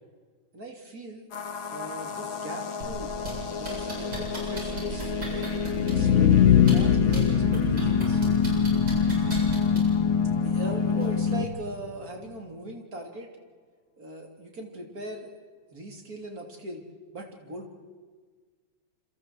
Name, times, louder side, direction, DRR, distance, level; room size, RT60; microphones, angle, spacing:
voice 1, 0.5-1.3 1.7-3.1 3.6-5.5 5.9-8.2 10.4-13.3 14.0-15.4 15.7-16.8 17.1-17.7, right 1 dB, 45° right, 2 dB, 3.7 m, -39 dB
sound 1, 1.3-11.5, left 4 dB, 80° left, 2.8 m, -28 dB
sound 2, 2.8-3.3 3.6-6.1 6.6-7.2 7.5-10.0 11.0-11.1, right 1 dB, 80° right, 8.9 m, -36 dB
sound 3, 5.6-11.6, left 9 dB, 60° left, 0.8 m, -24 dB
28.5 x 26.5 x 4.7 m, 1.5 s
omnidirectional pair, 2.1 m